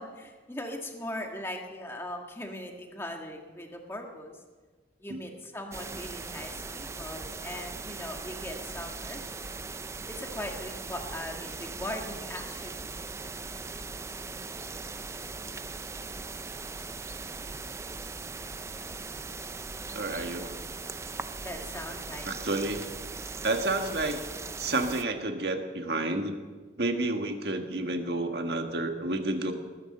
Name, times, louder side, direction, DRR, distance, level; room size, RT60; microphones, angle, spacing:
voice 1, 0.0-4.4 5.0-9.6 10.1-12.9 21.4-22.3 23.8-24.0, left 1 dB, 15° left, 2 dB, 1.8 m, -40 dB
sound 1, 5.7-25.0, right 4 dB, 15° right, 0.4 m, -39 dB
voice 2, 19.9-20.6 22.2-22.9 23.4-24.2 24.6-26.3 26.8-29.5, right 2 dB, 60° right, 5 dB, 1.6 m, -30 dB
20.0 x 10.0 x 6.7 m, 1.4 s
head